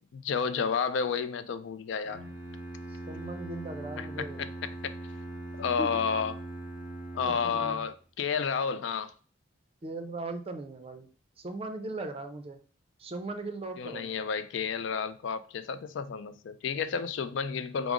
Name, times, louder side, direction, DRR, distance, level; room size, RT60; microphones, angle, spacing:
voice 1, 0.0-2.2 4.0-4.1 5.6-6.3 7.1-9.1 13.8-17.9, left 6 dB, 70° left, 0.3 m, -31 dB
Bowed string instrument, 2.0-7.9, right 1 dB, 45° left, 0.8 m, -41 dB
voice 2, 2.9-4.5 5.8-5.9 7.2-7.8 9.8-11.1 11.4-12.6 13.0-14.3, right 2 dB, 30° right, 0.5 m, -38 dB
4.8 x 2.0 x 3.5 m
head